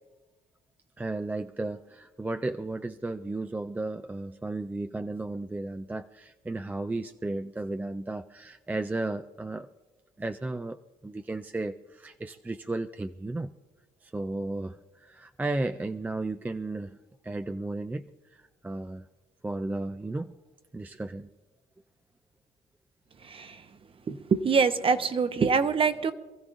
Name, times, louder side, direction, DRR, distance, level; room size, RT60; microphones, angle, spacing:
voice 1, 1.0-9.7 10.2-10.8 11.0-13.5 14.0-17.0 17.2-18.0 18.3-19.1 19.4-20.3 20.7-21.3, right 2 dB, 10° right, 9 dB, 0.3 m, -34 dB
voice 2, 24.1-26.1, right 5 dB, 30° right, 10 dB, 0.8 m, -24 dB
27.0 x 14.5 x 2.6 m, 1.2 s
cardioid pair, 110°, 17 cm